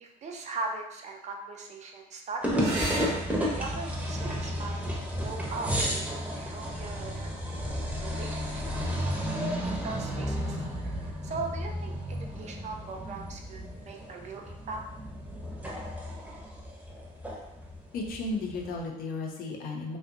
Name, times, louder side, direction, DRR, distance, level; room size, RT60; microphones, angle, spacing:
voice 1, 0.0-2.9 3.5-4.8 5.2-7.3 7.6-8.6 8.9-9.0 9.6-14.8, right 3 dB, 45° right, 2 dB, 0.4 m, -40 dB
sound 1, 2.4-18.8, equal, 10° right, 0.7 m, -33 dB
sound 2, 2.6-7.6 9.5-10.1 13.6-13.7 14.0-14.1, right 2 dB, 75° right, 0.8 m, -41 dB
voice 2, 17.9-20.0, left 3 dB, 65° left, 1 dB, 0.5 m, -34 dB
2.6 x 2.0 x 2.5 m, 0.83 s
supercardioid pair, 85°, 17 cm